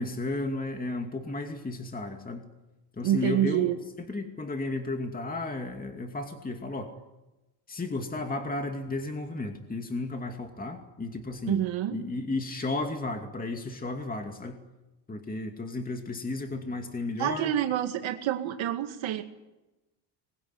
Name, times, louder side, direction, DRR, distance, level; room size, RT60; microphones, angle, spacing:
voice 1, 0.0-2.4 3.0-3.7 4.1-6.9 7.7-11.6 11.9-14.6 15.1-17.5, left 2 dB, 15° left, 4 dB, 2.5 m, -33 dB
voice 2, 3.0-3.8 11.5-12.0 17.2-19.2, right 12 dB, 65° right, 5 dB, 2.2 m, -27 dB
25.0 x 21.5 x 9.8 m, 1.0 s
cardioid pair, 115°, 50 cm